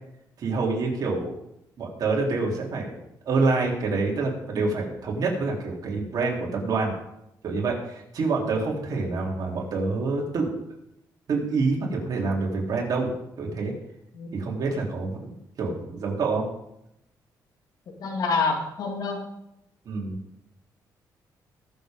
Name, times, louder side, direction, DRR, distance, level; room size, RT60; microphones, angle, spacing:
voice 1, 0.4-1.3 1.8-3.0 3.3-7.0 7.4-10.7 11.3-13.1 13.4-13.7 14.3-16.4 19.9-20.2, right 3 dB, 60° right, -2 dB, 3.6 m, -27 dB
voice 2, 17.9-19.3, left 4 dB, 65° left, 3 dB, 2.3 m, -27 dB
21.5 x 7.3 x 3.8 m, 0.82 s
cardioid pair, 115°, 7 cm